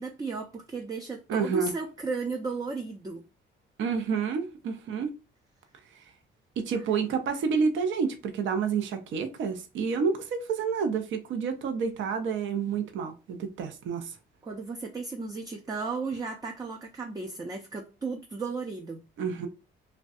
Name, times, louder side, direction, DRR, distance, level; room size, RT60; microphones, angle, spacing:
voice 1, 0.0-3.2 6.7-6.8 14.4-19.0, right 4 dB, 20° right, 0.4 m, -35 dB
voice 2, 1.3-1.7 3.8-5.1 5.9-6.1 6.6-14.2 19.2-19.5, right 5 dB, 75° right, 0.5 m, -29 dB
2.6 x 2.2 x 2.3 m
cardioid pair, 90°, 20 cm